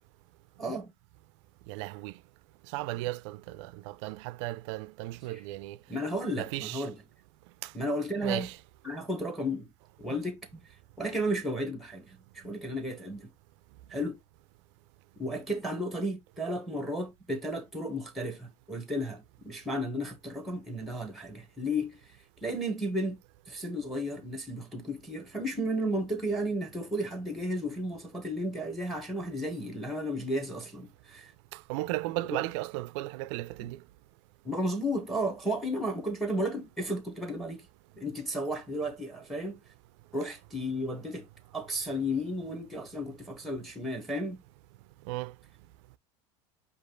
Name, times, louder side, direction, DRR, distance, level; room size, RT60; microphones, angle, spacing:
voice 1, 0.6-0.9 5.3-5.4 5.9-6.9 7.7-8.5 8.8-9.7 10.0-10.4 11.0-13.3 13.9-14.2 15.2-22.0 22.4-23.2 23.5-31.3 32.3-32.4 33.6-33.7 34.4-37.6 38.0-39.6 40.1-41.3 41.5-44.4, equal, ahead, 1.0 m, -33 dB
voice 2, 1.7-2.1 2.7-5.8 6.4-6.9 7.6-7.7 8.2-8.6 31.5-33.8 45.1-45.3, right 18 dB, 70° right, 0.4 m, -35 dB
5.1 x 2.4 x 3.7 m
supercardioid pair, 130°, 16 cm